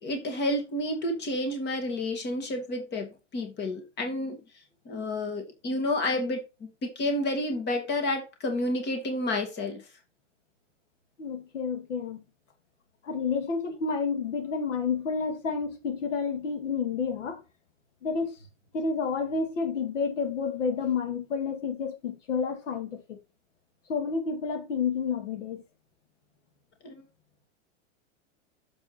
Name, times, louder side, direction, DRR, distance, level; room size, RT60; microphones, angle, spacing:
voice 1, 0.0-4.4 4.9-9.8 26.8-27.0, left 1 dB, 30° left, 2.3 m, -30 dB
voice 2, 11.2-12.2 13.0-17.4 18.0-18.4 18.7-23.2 23.9-25.6, left 5 dB, 80° left, 2.1 m, -30 dB
7.3 x 5.0 x 4.2 m
hypercardioid pair, 120°, 37 cm